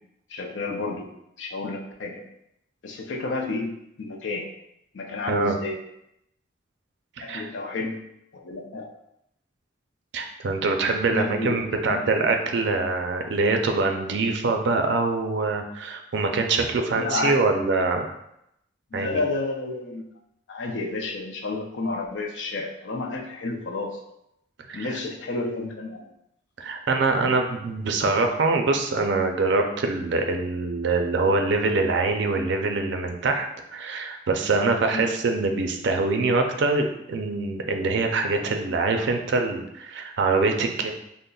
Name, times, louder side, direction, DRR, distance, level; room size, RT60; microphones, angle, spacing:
voice 1, 0.3-1.1 1.4-2.2 2.8-4.5 4.9-5.8 7.2-8.0 8.3-8.9 11.1-12.0 16.9-17.4 18.9-20.0 20.5-24.0 24.7-26.1 34.9-35.2, left 3 dB, 65° left, 2 dB, 0.5 m, -31 dB
voice 2, 7.2-7.5 10.1-18.1 18.9-19.2 24.7-25.0 26.6-33.5 33.7-40.9, right 3 dB, 65° right, 4 dB, 0.4 m, -24 dB
5.2 x 2.0 x 2.3 m, 0.80 s
head